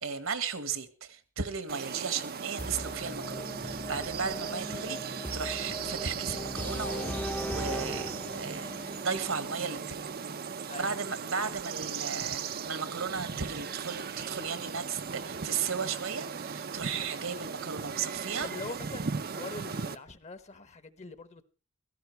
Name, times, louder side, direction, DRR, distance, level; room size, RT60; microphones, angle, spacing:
voice 1, 0.0-10.0 10.7-18.5, right 6 dB, 70° right, 1.6 m, -35 dB
sound 1, 1.7-20.0, right 6 dB, 45° right, 0.7 m, -38 dB
sound 2, 2.6-10.5, equal, 10° left, 0.7 m, -39 dB
voice 2, 10.7-11.1 18.4-21.4, left 3 dB, 35° left, 1.1 m, -43 dB
16.5 x 14.0 x 4.6 m
head